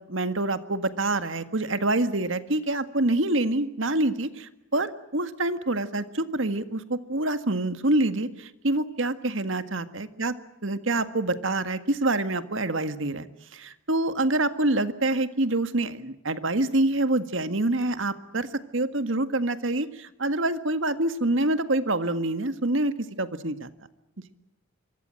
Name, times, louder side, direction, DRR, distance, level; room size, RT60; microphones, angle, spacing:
voice 1, 0.0-10.3 10.6-13.3 13.5-18.5 18.7-23.7, right 2 dB, 70° right, 10 dB, 1.8 m, -26 dB
26.0 x 24.0 x 7.7 m, 0.87 s
head